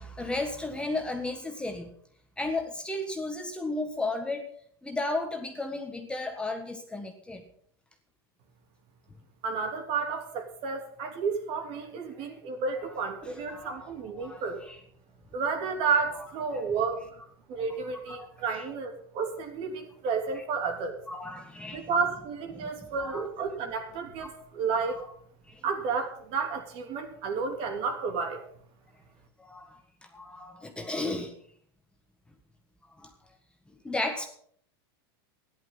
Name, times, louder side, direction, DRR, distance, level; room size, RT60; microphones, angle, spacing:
voice 1, 0.0-1.9 2.4-4.5 4.8-7.4 13.2-14.8 18.1-18.3 18.5-18.6 21.1-21.9 22.5-22.6 23.0-23.3 24.2-24.3 25.0-25.1 25.5-25.6 29.4-29.8 30.1-31.3 33.0-33.1 33.8-34.3, left 2 dB, 10° left, 4 dB, 1.6 m, -34 dB
voice 2, 9.4-14.6 15.3-17.2 17.5-21.0 21.7-25.0 25.6-28.4, right 5 dB, 50° right, 4 dB, 3.2 m, -31 dB
14.0 x 11.0 x 5.5 m, 0.62 s
supercardioid pair, 125°, 13 cm